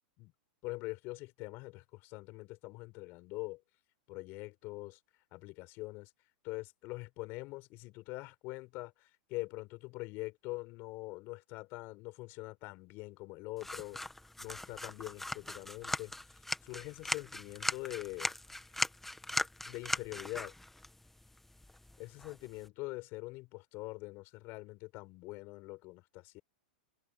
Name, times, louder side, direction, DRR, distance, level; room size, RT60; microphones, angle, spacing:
voice 1, 0.6-3.6 4.1-5.0 5.3-6.1 6.4-14.0 14.4-16.1 16.6-18.3 19.7-20.5 22.0-26.4, left 22 dB, 45° left, 6.2 m, -44 dB
sound 1, 13.6-22.7, left 1 dB, 5° left, 1.8 m, -40 dB
hypercardioid pair, 120°, 5 cm